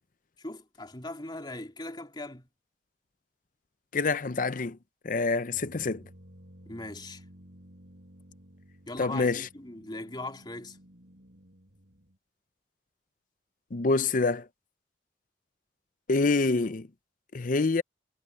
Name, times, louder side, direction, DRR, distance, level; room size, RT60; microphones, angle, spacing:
voice 1, 0.4-2.5 6.7-7.2 8.9-10.8, left 2 dB, 25° left, 2.8 m, -40 dB
voice 2, 3.9-4.8 5.0-6.0 9.0-9.5 13.7-14.5 16.1-16.9 17.3-17.8, left 3 dB, 45° left, 0.6 m, -26 dB
sound 1, 5.5-12.2, equal, 70° right, 4.1 m, -54 dB
head